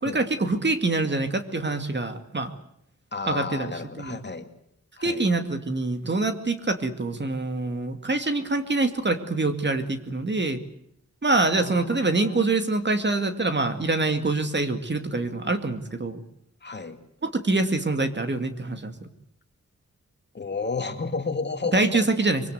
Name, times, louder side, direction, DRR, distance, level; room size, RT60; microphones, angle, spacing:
voice 1, 0.0-2.5 3.3-4.2 5.0-10.6 11.2-16.2 17.2-19.1 21.7-22.4, right 2 dB, 35° right, 8 dB, 2.4 m, -25 dB
voice 2, 3.1-4.5 5.0-5.3 11.3-12.5 16.6-17.0 20.3-22.1, left 4 dB, 35° left, 7 dB, 2.4 m, -32 dB
25.0 x 24.0 x 8.1 m, 0.71 s
wide cardioid pair, 135°, 30 cm